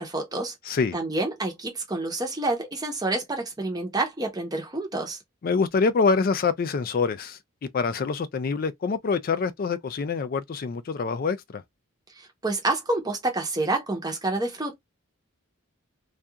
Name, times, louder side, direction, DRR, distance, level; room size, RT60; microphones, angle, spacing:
voice 1, 0.0-5.2 12.2-14.7, right 2 dB, 20° right, 0.7 m, -28 dB
voice 2, 0.7-1.0 5.4-7.4 7.7-11.6, left 4 dB, 40° left, 0.3 m, -25 dB
2.3 x 2.3 x 2.7 m
head